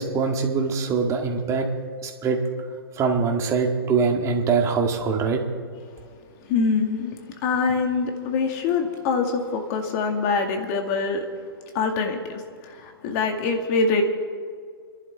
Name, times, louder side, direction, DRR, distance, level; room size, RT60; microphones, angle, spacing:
voice 1, 0.0-1.7 2.0-2.4 3.0-5.4, right 5 dB, 25° right, 2 dB, 1.9 m, -23 dB
voice 2, 6.5-7.2 7.4-11.3 11.7-14.0, left 4 dB, 40° left, 4 dB, 2.1 m, -24 dB
29.5 x 11.0 x 3.5 m, 2.1 s
hypercardioid pair, 120°, 13 cm